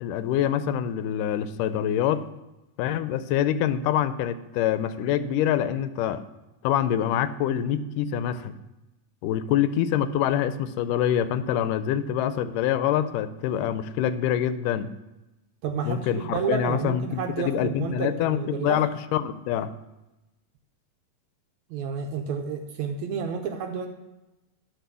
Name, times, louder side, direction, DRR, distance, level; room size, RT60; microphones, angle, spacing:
voice 1, 0.0-2.3 2.8-6.2 6.6-8.5 9.2-14.9 15.9-19.7, left 10 dB, 80° left, 12 dB, 2.1 m, -25 dB
voice 2, 15.6-18.8 21.7-23.9, right 6 dB, 75° right, 4 dB, 1.9 m, -30 dB
11.5 x 4.6 x 6.8 m, 1.0 s
omnidirectional pair, 3.8 m